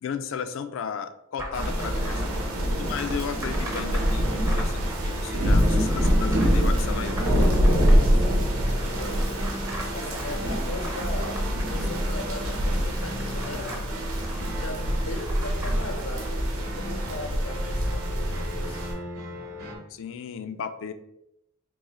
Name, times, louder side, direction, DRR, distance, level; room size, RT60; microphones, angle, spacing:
voice 1, 0.0-7.1 19.9-20.9, left 7 dB, 65° left, 10 dB, 0.3 m, -34 dB
sound 1, 1.4-16.3, equal, 15° right, 0.5 m, -41 dB
Rain thunder garden, 1.5-18.9, equal, 85° right, 0.9 m, -25 dB
sound 2, 1.8-19.8, equal, 50° right, 0.8 m, -40 dB
voice 2, 8.7-9.7 9.9-11.4 11.7-13.8 14.4-18.8, left 1 dB, 85° left, 4 dB, 0.7 m, -38 dB
3.9 x 2.7 x 2.9 m, 0.81 s
head